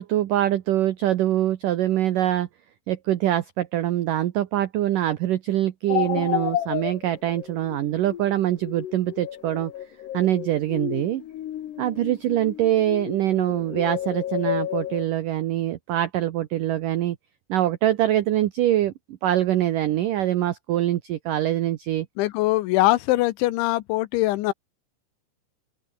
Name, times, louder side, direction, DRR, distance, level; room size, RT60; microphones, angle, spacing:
voice 1, 0.0-2.5 2.9-9.7 10.1-11.2 11.8-17.2 17.5-18.9 19.2-22.1, right 13 dB, 85° right, 1.8 m, -24 dB
sound 1, 5.9-15.1, left 12 dB, 65° left, 3.7 m, -31 dB
voice 2, 22.2-24.5, left 17 dB, 85° left, 3.2 m, -22 dB
open air
omnidirectional pair, 5.4 m